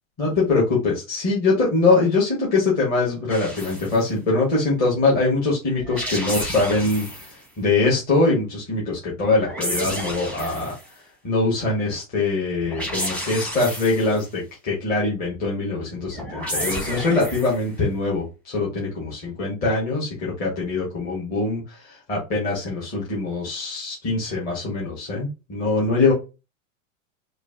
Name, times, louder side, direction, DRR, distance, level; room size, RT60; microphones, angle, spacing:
voice 1, 0.2-10.7 11.2-26.1, left 3 dB, 20° left, -5 dB, 1.4 m, -23 dB
sound 1, 3.3-4.0 5.8-7.4 9.2-10.9 12.6-14.2 16.1-17.7, equal, 5° left, 1.0 m, -31 dB
4.8 x 2.6 x 2.6 m, 0.27 s
supercardioid pair, 155°, 39 cm